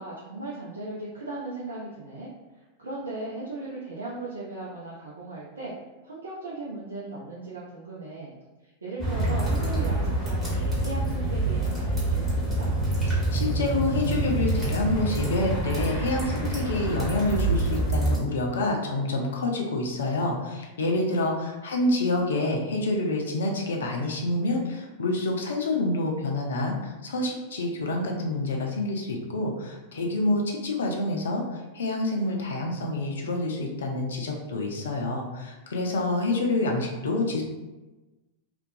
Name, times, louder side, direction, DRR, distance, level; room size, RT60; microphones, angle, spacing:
voice 1, 0.0-5.7 6.0-8.3 8.6-12.7 21.3-21.6 21.9-22.2, right 2 dB, 75° right, -6 dB, 0.4 m, -37 dB
sound 1, 9.0-18.2, right 2 dB, 15° right, 1.1 m, -26 dB
voice 2, 13.1-37.4, left 2 dB, 65° left, 1 dB, 0.4 m, -27 dB
2.3 x 2.1 x 2.6 m, 1.1 s
figure-of-eight pair, 90°, 0 cm